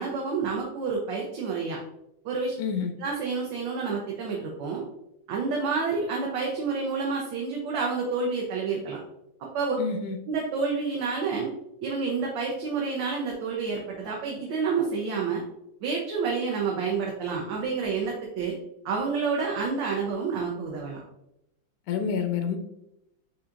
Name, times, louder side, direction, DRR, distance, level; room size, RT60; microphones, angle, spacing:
voice 1, 0.0-1.8 2.2-2.5 3.0-4.8 5.3-9.0 9.4-9.8 10.3-11.5 11.8-15.4 15.8-18.5 18.8-21.0, right 5 dB, 70° right, -1 dB, 1.3 m, -29 dB
voice 2, 2.6-2.9 9.8-10.2 21.9-22.6, left 6 dB, 90° left, 5 dB, 1.4 m, -28 dB
6.8 x 2.8 x 2.5 m, 0.84 s
omnidirectional pair, 2.2 m